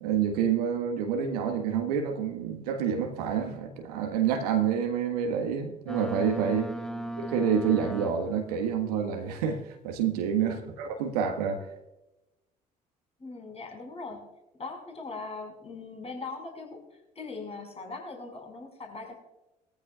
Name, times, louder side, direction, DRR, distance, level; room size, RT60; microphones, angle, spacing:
voice 1, 0.0-6.7 7.2-11.6, right 7 dB, 75° right, 4 dB, 1.5 m, -28 dB
Boat Water vehicle, 5.9-8.6, right 1 dB, 5° left, 0.8 m, -37 dB
voice 2, 6.7-7.2 10.4-10.8 13.2-14.2 14.6-19.1, left 3 dB, 30° left, 1 dB, 5.4 m, -41 dB
20.0 x 14.0 x 2.4 m, 0.95 s
figure-of-eight pair, 50°, 20 cm